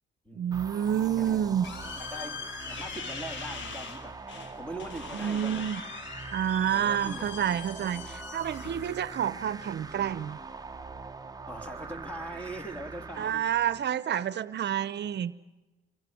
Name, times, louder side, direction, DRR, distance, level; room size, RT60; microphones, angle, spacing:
voice 1, 0.3-1.7 5.1-5.8 6.3-10.4 13.2-15.3, right 9 dB, 60° right, 15 dB, 0.9 m, -29 dB
sound 1, 0.5-14.0, right 4 dB, 20° right, 1.1 m, -43 dB
sound 2, 1.0-10.1, left 6 dB, 65° left, 1.9 m, -43 dB
voice 2, 1.2-1.5 1.9-4.2 4.5-5.7 6.7-7.3 7.9-8.1 11.5-13.5, right 1 dB, 5° left, 6 dB, 3.3 m, -41 dB
27.0 x 22.5 x 7.8 m, 1.1 s
cardioid pair, 90°, 20 cm